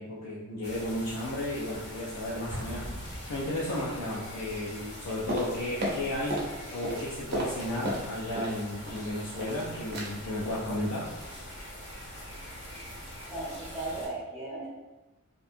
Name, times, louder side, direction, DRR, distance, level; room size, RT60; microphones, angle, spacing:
voice 1, 0.0-2.9 3.3-11.1, left 1 dB, 90° left, -6 dB, 0.5 m, -34 dB
sound 1, 0.6-14.1, equal, 50° left, 0.6 m, -43 dB
Explosion, 2.5-4.1, equal, 20° left, 1.4 m, -41 dB
sound 2, 5.3-6.5 6.8-8.6 8.9-9.6 9.9-10.1 10.4-10.6 11.0-11.2 11.5-11.6, equal, 45° right, 0.5 m, -34 dB
voice 2, 13.3-14.7, right 2 dB, 5° right, -12 dB, 0.7 m, -36 dB
2.7 x 2.2 x 2.5 m, 1.0 s
head